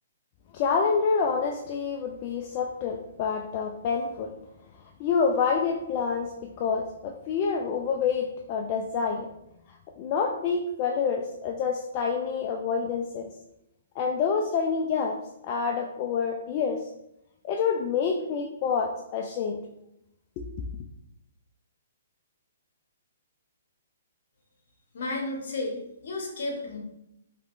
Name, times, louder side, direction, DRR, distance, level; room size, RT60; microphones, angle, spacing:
voice 1, 0.5-4.3 5.0-9.3 10.0-13.3 14.0-15.2 15.4-16.8 17.4-19.6 20.4-20.5, left 5 dB, 40° left, 1 dB, 0.3 m, -27 dB
voice 2, 24.9-26.8, left 2 dB, 65° left, 0 dB, 0.9 m, -32 dB
3.3 x 2.9 x 2.5 m, 0.83 s
hypercardioid pair, 140°, 0 cm